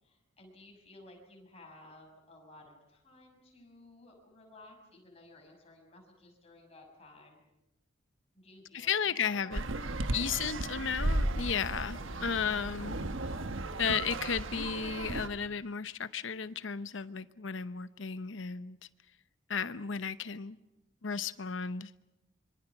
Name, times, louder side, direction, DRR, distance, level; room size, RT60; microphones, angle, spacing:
voice 1, 0.0-7.4 8.3-10.8 11.9-12.3, left 2 dB, 30° left, 1 dB, 6.2 m, -56 dB
voice 2, 8.7-9.6 10.1-13.0 13.8-18.8 19.5-20.6 21.0-22.0, left 6 dB, 70° left, 14 dB, 0.8 m, -34 dB
sound 1, 9.5-15.3, right 2 dB, 80° right, 1.3 m, -35 dB
26.0 x 24.5 x 6.0 m, 0.93 s
head